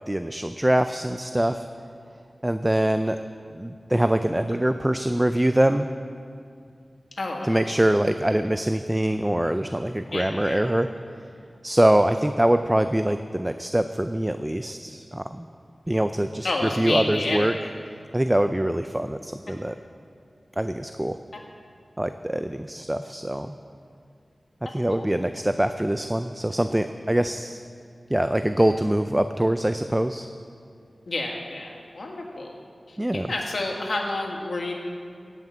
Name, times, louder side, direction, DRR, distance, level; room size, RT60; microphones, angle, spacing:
voice 1, 0.1-1.7 2.4-3.2 3.5-5.9 7.4-10.9 11.6-15.5 15.9-17.5 18.1-19.8 20.6-21.2 22.0-23.6 24.7-27.6 28.1-30.3 33.0-33.3, right 1 dB, 15° right, 9 dB, 0.4 m, -24 dB
voice 2, 7.2-7.6 10.1-10.6 16.4-17.6 21.3-21.4 24.9-25.1 31.1-32.6 32.9-34.7, left 2 dB, 75° left, 0 dB, 1.8 m, -30 dB
16.0 x 5.9 x 8.0 m, 2.3 s
wide cardioid pair, 75°, 0 cm